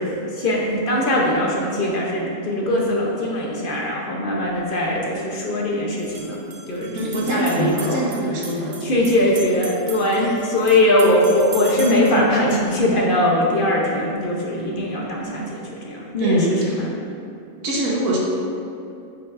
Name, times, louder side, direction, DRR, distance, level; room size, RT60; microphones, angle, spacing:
voice 1, 0.0-6.4 6.7-8.0 8.8-16.9, left 1 dB, 45° left, -3 dB, 0.8 m, -21 dB
sound 1, 4.4-4.5 6.0-12.2, right 3 dB, 50° right, 0.6 m, -38 dB
voice 2, 6.9-8.7 16.2-16.8 17.6-18.2, right 1 dB, 65° right, -4 dB, 1.5 m, -23 dB
8.7 x 4.7 x 2.6 m, 2.6 s
omnidirectional pair, 1.6 m